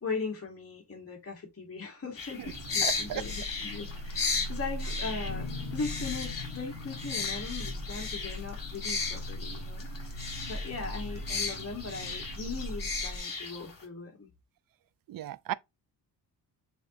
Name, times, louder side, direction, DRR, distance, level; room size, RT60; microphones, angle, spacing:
voice 1, 0.0-14.3, left 4 dB, 35° left, 1.8 m, -39 dB
sound 1, 2.2-13.8, left 4 dB, 50° left, 2.0 m, -36 dB
sound 2, 2.4-13.2, equal, 80° right, 1.2 m, -40 dB
voice 2, 2.8-3.3 10.7-10.9 15.1-15.5, right 13 dB, 55° right, 0.5 m, -36 dB
sound 3, 5.2-12.8, left 18 dB, 90° left, 0.5 m, -47 dB
6.9 x 2.9 x 2.6 m
cardioid pair, 80°, 43 cm